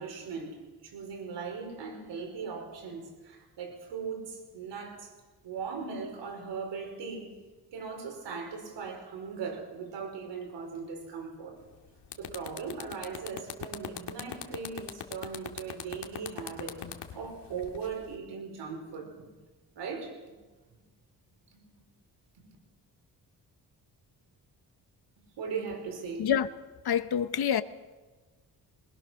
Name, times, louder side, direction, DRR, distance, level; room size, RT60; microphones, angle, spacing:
voice 1, 0.0-5.1 5.4-7.4 7.7-11.6 12.1-16.8 17.1-19.3 19.7-20.2 22.4-22.5 25.4-26.3, right 5 dB, 85° right, 5.1 m, -39 dB
sound 1, 11.6-11.8 12.1-18.2, left 9 dB, 80° left, 2.1 m, -40 dB
voice 2, 26.8-27.6, left 8 dB, 65° left, 1.1 m, -26 dB
22.0 x 21.0 x 6.4 m
cardioid pair, 65°, 41 cm